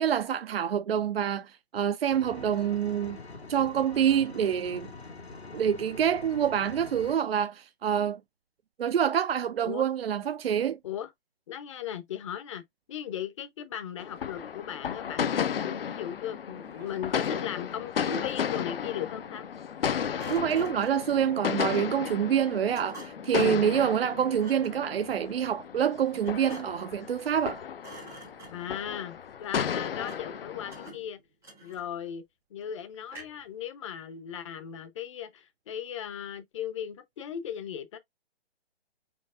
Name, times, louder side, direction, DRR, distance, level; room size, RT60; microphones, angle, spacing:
voice 1, 0.0-3.2 3.5-4.9 5.5-8.2 8.8-10.8 20.3-27.6, right 9 dB, 70° right, 0.5 m, -27 dB
Engine, 2.1-7.1, left 3 dB, 80° left, 2.0 m, -44 dB
voice 2, 11.5-19.5 23.3-23.7 28.5-31.2 31.6-32.2 32.5-38.0, left 9 dB, 30° left, 0.7 m, -37 dB
sound 1, 14.0-30.9, left 8 dB, 65° left, 0.6 m, -34 dB
Thump thud, 16.6-17.4 20.2-21.1 22.7-23.4 24.3-24.8 26.2-26.9 27.3-27.5 27.8-28.8 30.0-30.4 30.7-32.1 33.1-33.5, right 1 dB, ahead, 0.3 m, -48 dB
4.6 x 4.6 x 2.4 m
figure-of-eight pair, 135°, 31 cm